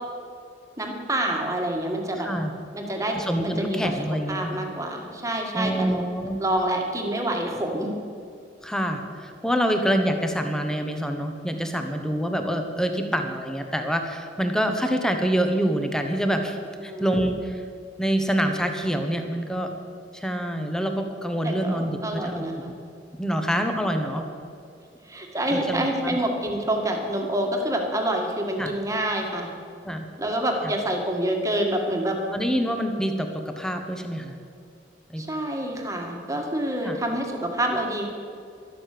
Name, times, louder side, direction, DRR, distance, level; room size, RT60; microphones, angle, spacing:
voice 1, 0.8-2.3 2.7-3.9 4.3-6.0 6.4-7.9 16.8-17.3 21.4-22.7 25.0-29.5 30.2-32.2 35.2-38.1, right 1 dB, 20° right, 1 dB, 1.9 m, -27 dB
voice 2, 2.2-2.5 3.1-4.5 5.5-6.4 8.6-17.6 18.0-19.7 20.1-22.4 23.2-24.3 25.5-26.2 28.6-28.7 29.8-30.1 30.6-30.7 32.3-34.3 35.1-35.2 36.8-37.0, equal, 5° left, 5 dB, 1.2 m, -26 dB
12.5 x 12.5 x 6.8 m, 2.3 s
head